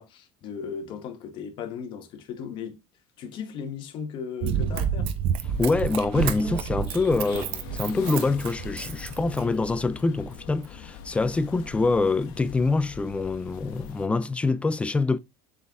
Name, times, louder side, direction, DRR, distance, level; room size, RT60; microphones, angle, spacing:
voice 1, 0.0-2.8 3.2-5.1, left 7 dB, 50° left, 1.2 m, -36 dB
Run, 4.4-9.7 10.3-10.4, right 8 dB, 60° right, 0.8 m, -29 dB
sound 1, 5.4-14.1, left 7 dB, 90° left, 1.0 m, -42 dB
voice 2, 5.6-15.2, left 3 dB, 10° left, 0.3 m, -25 dB
7.5 x 4.0 x 3.5 m
cardioid pair, 145°, 11 cm